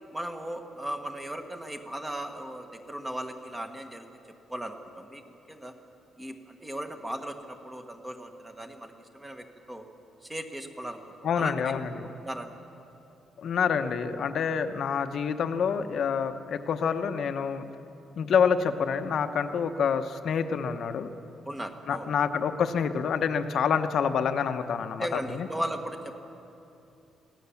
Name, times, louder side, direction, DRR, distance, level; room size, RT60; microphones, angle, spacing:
voice 1, 0.1-4.1 4.5-5.7 6.2-9.8 10.2-11.0 11.3-12.5 21.4-22.1 25.0-26.1, right 1 dB, 10° right, 5 dB, 1.4 m, -37 dB
voice 2, 11.2-12.1 13.4-17.7 18.2-21.1 21.9-25.1 25.3-25.5, left 6 dB, 50° left, 8 dB, 1.0 m, -27 dB
23.0 x 16.5 x 7.1 m, 2.8 s
cardioid pair, 160°, 0 cm